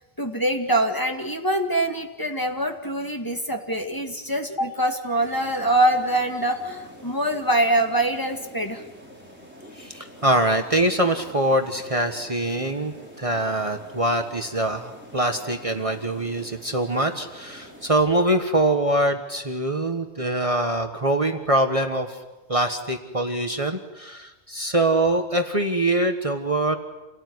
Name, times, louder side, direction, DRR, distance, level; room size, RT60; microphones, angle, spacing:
voice 1, 0.2-8.8, right 1 dB, 20° left, 3 dB, 2.2 m, -24 dB
sound 1, 5.2-17.9, equal, 10° right, 5.2 m, -46 dB
voice 2, 9.8-22.2 22.5-26.8, right 1 dB, 30° right, 5 dB, 1.5 m, -24 dB
28.5 x 17.5 x 9.6 m, 1.1 s
omnidirectional pair, 1.1 m